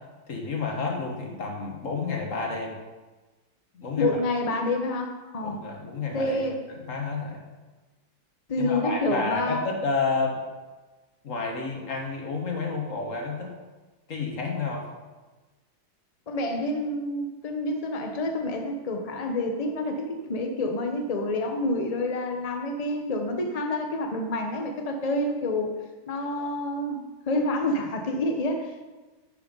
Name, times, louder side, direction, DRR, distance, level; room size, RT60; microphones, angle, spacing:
voice 1, 0.3-2.8 3.7-4.2 5.4-6.4 6.9-7.4 8.6-10.4 11.2-13.5 14.1-14.9, left 4 dB, 40° left, 1 dB, 1.8 m, -30 dB
voice 2, 4.0-5.6 6.1-6.6 8.5-9.6 16.3-25.7 26.1-28.9, left 1 dB, 60° left, 3 dB, 0.4 m, -28 dB
10.0 x 7.1 x 5.4 m, 1.2 s
omnidirectional pair, 2.3 m